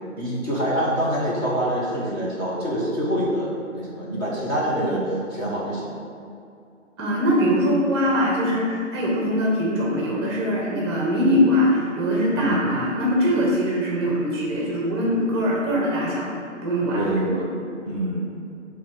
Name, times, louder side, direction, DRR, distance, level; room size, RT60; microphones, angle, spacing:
voice 1, 0.2-5.0 5.3-6.0 12.4-12.6 16.9-17.4 17.8-18.3, right 1 dB, 15° left, -8 dB, 1.0 m, -25 dB
voice 2, 7.0-16.3 16.6-17.4, equal, 20° right, -4 dB, 1.0 m, -22 dB
7.3 x 3.5 x 4.8 m, 2.5 s
hypercardioid pair, 155°, 38 cm